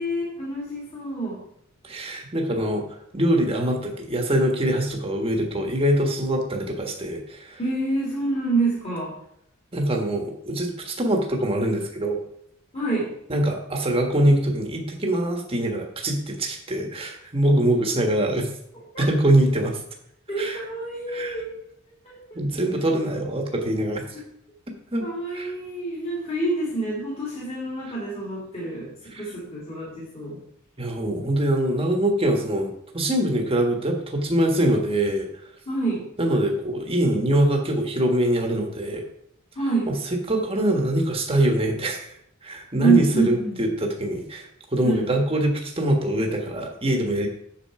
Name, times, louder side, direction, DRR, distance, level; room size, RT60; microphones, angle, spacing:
voice 1, 0.0-1.4 7.6-9.2 12.7-13.1 18.9-19.1 20.3-21.6 22.0-22.2 24.1-24.2 25.0-30.4 35.7-36.1 39.6-39.9 42.8-43.6 44.8-45.1, right 3 dB, 30° left, -6 dB, 2.5 m, -27 dB
voice 2, 1.8-7.6 9.7-12.2 13.3-18.5 19.0-19.8 20.3-20.6 21.1-21.4 22.3-24.0 24.9-25.0 25.3-25.5 29.1-29.2 30.8-35.3 36.2-39.0 40.3-42.1 42.4-44.5 44.7-47.3, right 1 dB, 25° right, 2 dB, 1.4 m, -23 dB
7.5 x 6.7 x 4.8 m, 0.72 s
head